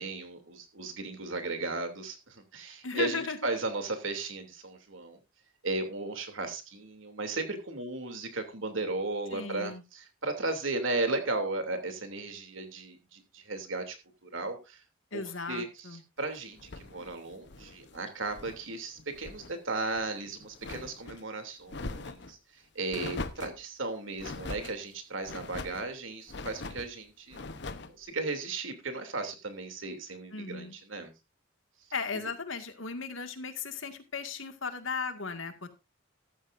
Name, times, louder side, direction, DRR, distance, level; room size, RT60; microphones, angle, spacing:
voice 1, 0.0-5.2 5.6-14.0 14.2-14.8 15.1-27.4 27.9-31.1 32.1-32.3, right 3 dB, 85° right, 6 dB, 2.9 m, -35 dB
voice 2, 2.8-3.4 9.3-9.8 15.1-16.0 30.3-30.7 31.9-35.7, left 4 dB, 85° left, 7 dB, 2.0 m, -36 dB
sound 1, 16.6-18.7 19.0-19.5 19.9-21.2 21.7-22.3 22.9-23.6 24.2-24.8 25.2-25.9 26.3-26.9 27.3-27.9, left 3 dB, 60° left, 1.0 m, -41 dB
14.0 x 13.0 x 2.6 m, 0.26 s
head